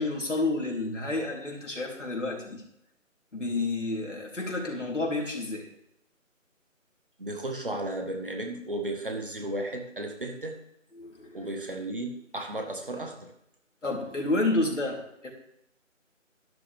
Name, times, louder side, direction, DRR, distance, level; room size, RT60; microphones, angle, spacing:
voice 1, 0.0-2.6 3.3-5.7 11.0-11.5 13.8-15.3, left 2 dB, 65° left, -1 dB, 3.6 m, -30 dB
voice 2, 7.2-10.6 11.3-13.3, right 1 dB, 40° right, 4 dB, 1.5 m, -34 dB
12.0 x 11.5 x 3.6 m, 0.77 s
figure-of-eight pair, 175°, 39 cm